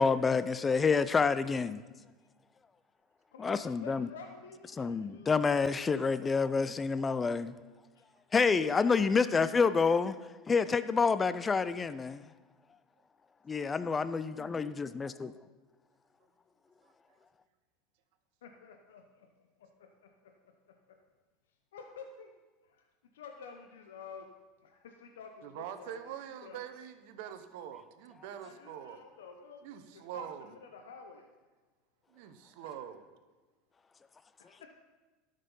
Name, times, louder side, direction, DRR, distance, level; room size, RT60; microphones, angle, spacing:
voice 1, 0.0-1.8 3.4-4.1 4.7-7.5 8.3-10.1 10.5-12.3 13.5-15.3, left 5 dB, 25° left, 14 dB, 0.4 m, -28 dB
voice 2, 3.3-5.3 8.6-9.2 14.4-14.8 18.4-20.3 20.9-21.0 21.7-22.3 22.6-22.8 23.1-24.3 24.6-26.1 26.4-26.6 28.4-29.6 29.9-31.3 32.6-32.9 34.4-34.7, left 5 dB, 85° left, 4 dB, 0.8 m, -51 dB
voice 3, 25.4-29.0 29.6-30.5 32.1-33.0, right 10 dB, 70° right, 10 dB, 0.9 m, -44 dB
12.0 x 6.5 x 5.5 m, 1.3 s
hypercardioid pair, 90°, 0 cm